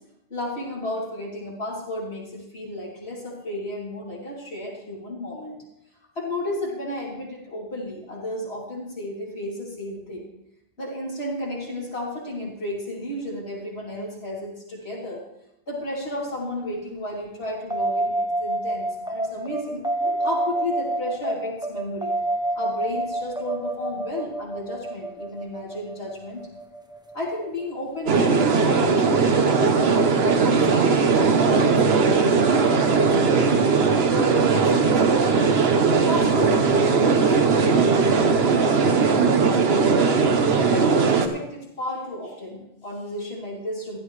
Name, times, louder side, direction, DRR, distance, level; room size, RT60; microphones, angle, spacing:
voice 1, 0.3-5.6 6.1-10.3 10.8-15.2 15.7-22.1 22.5-26.4 27.1-33.7 34.1-35.6 36.1-40.0 40.6-44.0, left 1 dB, 80° left, -4 dB, 3.3 m, -33 dB
sound 1, 17.7-28.5, right 1 dB, 5° right, 0.8 m, -28 dB
sound 2, 28.1-41.3, right 5 dB, 75° right, 1.2 m, -19 dB
15.0 x 11.5 x 3.2 m, 0.85 s
omnidirectional pair, 1.0 m